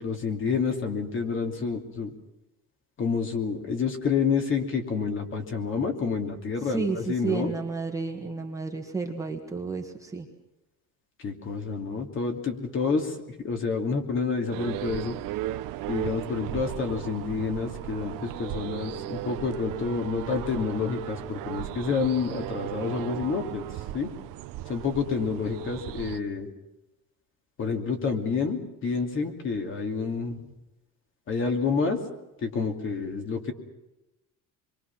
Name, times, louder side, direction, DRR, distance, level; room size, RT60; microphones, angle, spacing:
voice 1, 0.0-2.1 3.0-7.5 11.2-13.2 13.4-15.2 15.9-23.6 23.9-24.1 24.7-26.5 27.6-30.4 31.3-32.0 32.4-33.5, left 5 dB, 35° left, 4 dB, 2.8 m, -28 dB
voice 2, 6.6-10.3, right 4 dB, 10° right, 1 dB, 1.6 m, -31 dB
sound 1, 14.5-26.2, right 14 dB, 75° right, 1.1 m, -36 dB
27.0 x 23.0 x 6.0 m, 0.95 s
cardioid pair, 170°, 34 cm